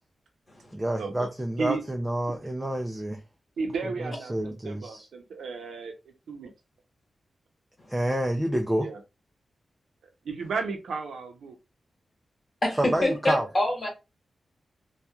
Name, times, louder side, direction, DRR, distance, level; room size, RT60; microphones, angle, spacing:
voice 1, 0.7-3.2 3.8-5.1 7.9-8.9 12.8-13.5, right 1 dB, 15° right, 0.4 m, -28 dB
voice 2, 3.6-5.9 6.3-6.5 8.8-9.0 10.2-11.6, right 4 dB, 90° right, 0.6 m, -33 dB
voice 3, 12.6-13.9, left 1 dB, 40° left, 1.3 m, -26 dB
2.9 x 2.3 x 2.2 m
cardioid pair, 80°, 0 cm